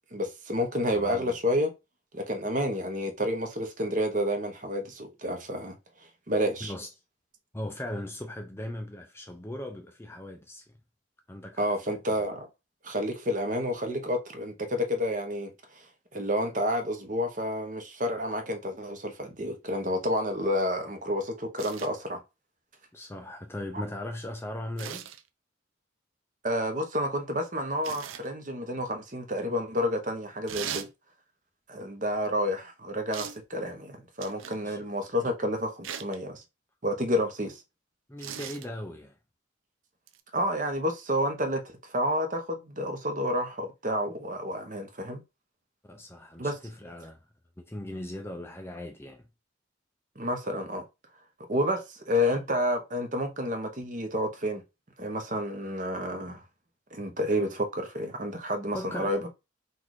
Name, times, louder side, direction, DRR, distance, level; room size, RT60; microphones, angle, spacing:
voice 1, 0.1-1.7 2.1-5.8 6.3-6.7 11.6-12.5 12.8-15.5 15.7-15.9 16.1-22.2 26.4-30.9 31.7-36.4 36.8-37.6 40.3-45.2 46.4-46.6 50.2-50.8 51.5-54.6 55.0-56.4 56.9-59.3, equal, 40° right, 0.9 m, -30 dB
voice 2, 1.0-1.3 6.6-6.9 7.5-10.6 11.3-11.7 22.9-25.1 34.6-34.8 38.1-39.2 45.8-47.2 47.6-49.3 58.7-59.1, left 1 dB, 10° left, 0.4 m, -38 dB
sound 1, 21.6-21.9 24.8-25.2 27.8-28.3 30.5-30.9 33.1-33.4 34.2-34.6 35.8-36.2 38.2-38.7 40.1-40.2, right 9 dB, 90° right, 0.5 m, -38 dB
4.1 x 2.5 x 4.7 m
head